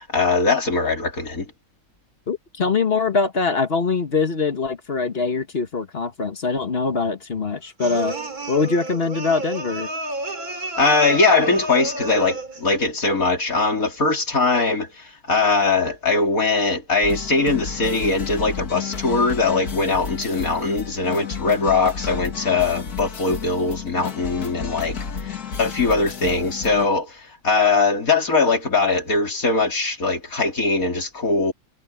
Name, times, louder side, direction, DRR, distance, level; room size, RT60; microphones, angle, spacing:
voice 1, 0.0-1.5 10.8-31.5, left 3 dB, 70° left, 3.9 m, -21 dB
voice 2, 2.3-8.2 8.5-9.9, left 4 dB, 40° left, 1.6 m, -23 dB
sound 1, 7.8-12.7, right 2 dB, 75° right, 3.3 m, -31 dB
sound 2, 17.0-26.9, left 6 dB, 90° left, 2.4 m, -32 dB
omnidirectional pair, 1.6 m